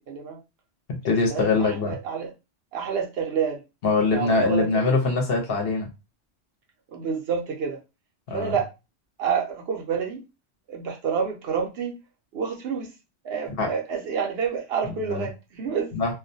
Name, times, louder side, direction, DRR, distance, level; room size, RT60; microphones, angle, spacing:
voice 1, 0.1-0.4 1.1-2.3 2.7-3.6 4.1-4.9 6.9-7.8 8.3-8.7 9.2-10.2 10.7-12.0 12.3-12.9 13.2-15.9, right 6 dB, 65° right, 0.8 m, -28 dB
voice 2, 1.0-2.0 3.8-5.9 8.3-8.6 13.6-13.7 15.1-15.3 15.9-16.1, left 3 dB, 60° left, 0.9 m, -23 dB
2.3 x 2.2 x 2.6 m
omnidirectional pair, 1.2 m